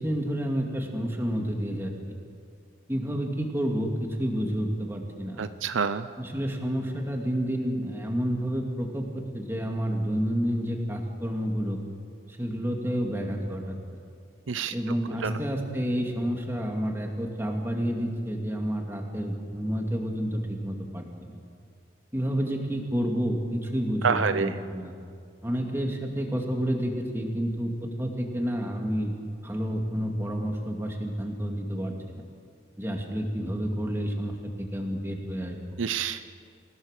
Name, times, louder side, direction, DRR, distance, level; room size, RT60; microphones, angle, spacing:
voice 1, 0.0-2.2 2.9-5.4 6.2-11.8 12.4-13.8 14.7-21.1 22.1-24.9 25.4-29.1 29.4-31.9 32.8-35.6, equal, 10° right, 1 dB, 2.4 m, -29 dB
voice 2, 5.4-6.1 14.5-14.7 15.2-15.4 24.0-24.6 35.8-36.2, right 6 dB, 75° right, 11 dB, 0.7 m, -27 dB
28.0 x 16.5 x 6.7 m, 2.2 s
head